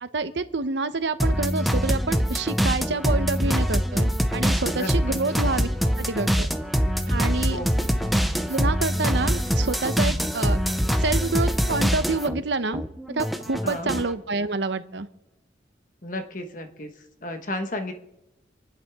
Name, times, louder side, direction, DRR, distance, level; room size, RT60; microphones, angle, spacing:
voice 1, 0.0-5.7 6.0-6.5 7.1-7.6 8.5-10.6 11.0-12.8 13.1-15.1, right 3 dB, 75° right, 11 dB, 0.8 m, -27 dB
sound 1, 1.2-12.4 12.7-14.1, equal, ahead, 0.6 m, -24 dB
voice 2, 4.7-5.2 7.5-7.9 13.6-13.9 16.0-16.9 17.2-17.9, left 1 dB, 45° left, 6 dB, 1.4 m, -33 dB
sound 2, 4.9-10.9, right 1 dB, 50° right, 2.3 m, -47 dB
27.5 x 11.0 x 3.6 m, 0.89 s
head